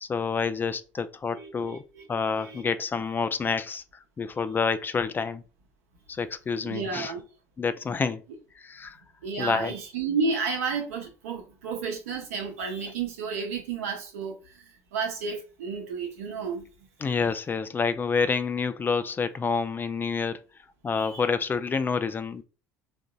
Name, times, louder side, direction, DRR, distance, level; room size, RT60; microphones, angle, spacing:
voice 1, 0.0-1.8 2.1-5.4 6.1-7.1 7.6-8.2 8.6-9.0 9.4-9.7 17.0-20.4 20.8-22.4, left 5 dB, 25° left, 0.3 m, -28 dB
voice 2, 1.3-2.1 2.4-2.6 6.6-7.2 9.2-16.7 20.9-21.2, right 5 dB, 80° right, 0.9 m, -32 dB
3.7 x 2.6 x 2.2 m
hypercardioid pair, 70°, 8 cm